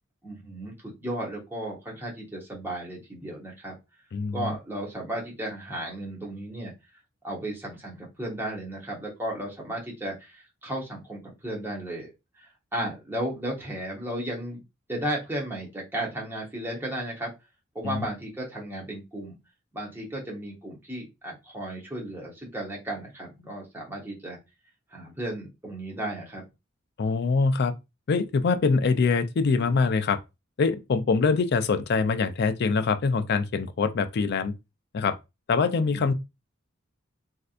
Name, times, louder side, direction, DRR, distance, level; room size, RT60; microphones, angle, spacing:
voice 1, 0.2-3.7 4.3-6.7 7.2-12.1 12.4-14.6 14.9-17.3 17.7-19.3 19.7-24.4 24.9-26.4 35.9-36.1, right 1 dB, 10° right, 1.1 m, -34 dB
voice 2, 4.1-4.6 17.8-18.1 27.0-27.7 28.1-30.2 30.6-34.5 34.9-35.2 35.5-36.1, left 4 dB, 55° left, 0.4 m, -24 dB
3.3 x 2.7 x 2.4 m
head